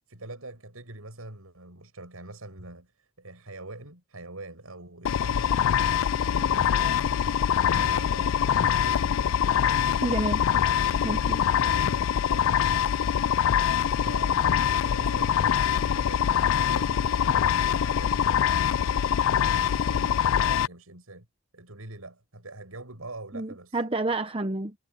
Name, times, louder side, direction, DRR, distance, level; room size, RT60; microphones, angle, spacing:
voice 1, 0.1-5.9 6.3-7.1 7.5-9.5 10.5-11.2 11.5-12.9 14.0-17.4 17.7-19.0 19.4-21.3 21.5-23.8, right 2 dB, 90° right, 6.7 m, -44 dB
sound 1, 5.1-20.7, left 8 dB, 70° left, 0.3 m, -24 dB
voice 2, 10.0-10.4 11.0-11.5 23.3-24.7, right 2 dB, 25° right, 0.8 m, -29 dB
head